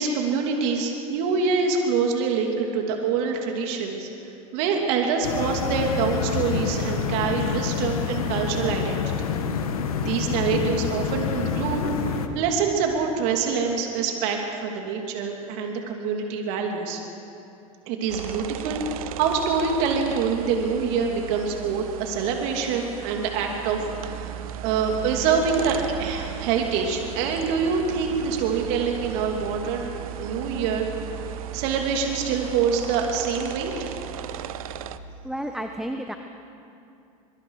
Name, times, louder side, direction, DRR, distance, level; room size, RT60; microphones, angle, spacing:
voice 1, 0.0-4.1 4.5-9.3 10.0-11.8 12.3-17.0 17.9-29.9 30.2-30.9 31.5-33.9, right 5 dB, 65° right, 2 dB, 2.9 m, -25 dB
sound 1, 5.2-12.3, left 6 dB, 85° left, 1.6 m, -27 dB
sound 2, 18.1-35.0, right 10 dB, 80° right, 0.9 m, -36 dB
voice 2, 35.2-36.1, right 1 dB, ahead, 5 dB, 1.2 m, -31 dB
24.0 x 24.0 x 4.9 m, 2.7 s
hypercardioid pair, 95°, 18 cm